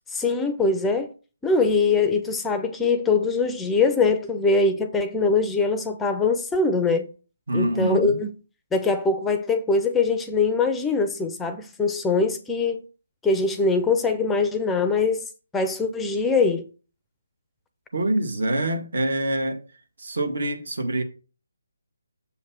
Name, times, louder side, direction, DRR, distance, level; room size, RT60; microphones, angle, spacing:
voice 1, 0.1-1.1 1.4-7.1 7.5-8.3 8.7-12.8 13.2-16.7, left 4 dB, 5° left, 0.4 m, -22 dB
voice 2, 7.5-8.2 17.9-19.6 20.0-21.0, right 1 dB, 70° right, 1.4 m, -25 dB
7.0 x 3.2 x 5.8 m
figure-of-eight pair, 155°, 0 cm